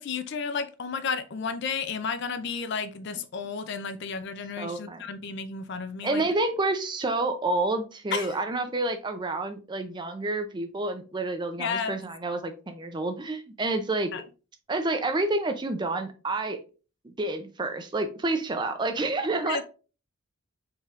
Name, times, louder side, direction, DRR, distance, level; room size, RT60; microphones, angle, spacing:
voice 1, 0.0-6.3 8.1-8.4 11.6-12.0 14.1-14.2 19.4-19.6, left 5 dB, 50° left, 0.4 m, -32 dB
voice 2, 4.6-5.0 6.0-14.1 14.7-16.6 17.0-19.6, right 2 dB, 20° right, 0.4 m, -29 dB
4.4 x 3.5 x 2.4 m
head